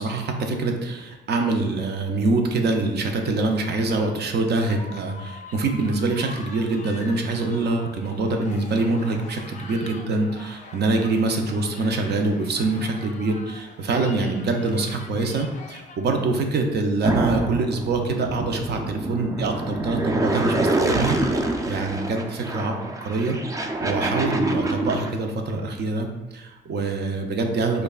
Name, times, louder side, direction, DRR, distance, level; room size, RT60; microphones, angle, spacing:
voice 1, 0.0-22.8 23.0-23.4 23.8-26.1 26.3-27.8, right 3 dB, 55° right, 4 dB, 0.6 m, -25 dB
sound 1, 4.6-16.0, left 3 dB, 40° left, 0.5 m, -43 dB
sound 2, 17.0-25.1, right 2 dB, 15° right, 0.4 m, -26 dB
5.1 x 2.3 x 2.4 m, 1.1 s
cardioid pair, 90°, 20 cm